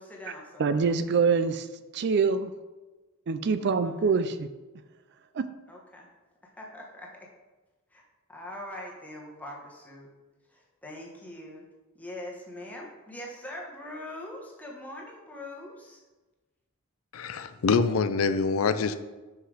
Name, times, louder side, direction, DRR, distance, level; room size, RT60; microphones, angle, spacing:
voice 1, 0.0-0.9 3.8-4.1 5.7-6.1 6.4-7.3 7.9-8.0 8.3-10.1 10.5-11.7 11.9-16.0, left 1 dB, 5° left, -2 dB, 1.3 m, -42 dB
voice 2, 0.6-1.7 1.9-2.5 3.3-4.5 5.3-5.5, right 5 dB, 55° right, 11 dB, 0.4 m, -25 dB
voice 3, 17.1-19.0, left 4 dB, 75° left, 11 dB, 0.5 m, -25 dB
5.7 x 5.6 x 4.9 m, 1.2 s
head